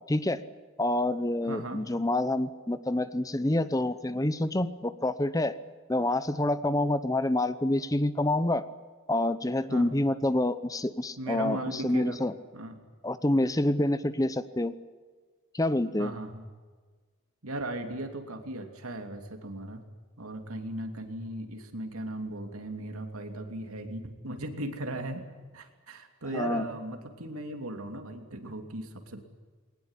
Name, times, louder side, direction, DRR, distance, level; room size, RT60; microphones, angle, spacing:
voice 1, 0.1-0.4 0.8-5.5 5.9-8.6 9.1-12.3 13.0-14.7 15.5-16.1 26.3-26.6, left 1 dB, 15° left, 13 dB, 0.8 m, -27 dB
voice 2, 1.5-1.8 9.7-9.9 11.2-12.2 12.5-12.8 16.0-16.4 17.4-19.9 20.2-25.3 25.5-29.2, right 1 dB, 80° right, 6 dB, 2.9 m, -37 dB
21.0 x 19.0 x 9.9 m, 1.5 s
head